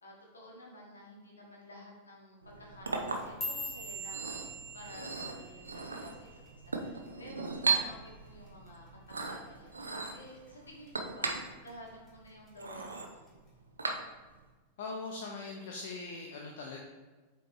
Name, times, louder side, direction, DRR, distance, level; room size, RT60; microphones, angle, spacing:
voice 1, 0.0-11.4 11.6-13.3, left 1 dB, 75° left, -2 dB, 1.7 m, -52 dB
Chink clink, 2.4-14.4, right 4 dB, 75° right, 0.7 m, -38 dB
sound 1, 3.1-7.4 7.7-8.1 8.5-8.9 9.3-9.5 10.1-10.5 10.9-11.7 12.1-12.5 13.3-13.4, equal, 25° left, 2.1 m, -43 dB
voice 2, 14.8-16.8, left 3 dB, 55° left, 0 dB, 0.8 m, -41 dB
7.5 x 4.5 x 3.2 m, 1.3 s
figure-of-eight pair, 90°, 0 cm